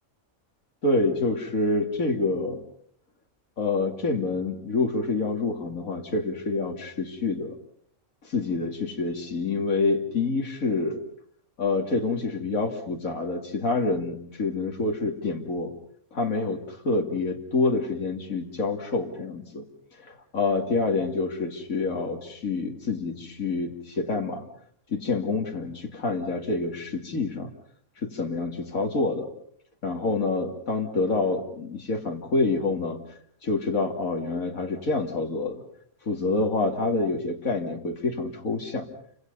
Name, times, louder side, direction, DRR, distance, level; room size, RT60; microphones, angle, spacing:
voice 1, 0.8-2.6 3.6-7.6 8.2-11.0 11.6-15.7 16.1-19.6 20.0-24.5 24.9-27.5 28.1-29.3 29.8-33.0 33.4-35.6 36.1-38.9, left 3 dB, 70° left, 2 dB, 3.0 m, -27 dB
29.5 x 26.0 x 5.4 m, 0.63 s
omnidirectional pair, 1.5 m